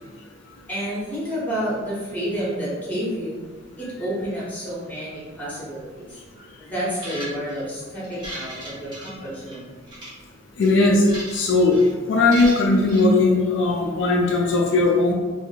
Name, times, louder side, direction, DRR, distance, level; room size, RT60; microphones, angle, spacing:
voice 1, 0.7-3.4 3.8-6.2 6.6-9.7, equal, 10° left, -9 dB, 1.2 m, -30 dB
sound 1, 6.9-7.6 8.0-9.6 9.9-10.1 10.6-11.4 11.7-11.9 12.3-13.1, right 1 dB, 25° right, 0.8 m, -36 dB
voice 2, 10.6-11.0 11.3-11.8 12.1-15.1, left 3 dB, 65° left, -1 dB, 0.4 m, -18 dB
2.9 x 2.6 x 2.3 m, 1.4 s
head